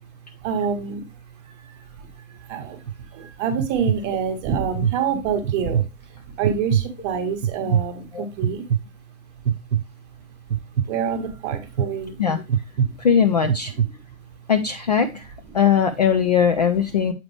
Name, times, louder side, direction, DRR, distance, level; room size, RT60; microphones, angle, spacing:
voice 1, 0.4-8.7 10.5-12.2 12.8-13.0 14.4-14.5, right 6 dB, 25° right, 5 dB, 1.2 m, -28 dB
sound 1, 2.6-3.0 3.5-4.0 4.5-4.9 5.4-5.9 6.4-6.9 7.4-7.9 8.4-8.8 9.5-9.8 10.5-10.9 11.5-11.9 12.5-12.9 13.4-13.9, right 8 dB, 60° right, 0.7 m, -21 dB
voice 2, 13.0-13.7 14.5-17.1, left 7 dB, 30° left, 5 dB, 0.4 m, -20 dB
7.4 x 4.8 x 3.1 m, 0.26 s
figure-of-eight pair, 120°, 42 cm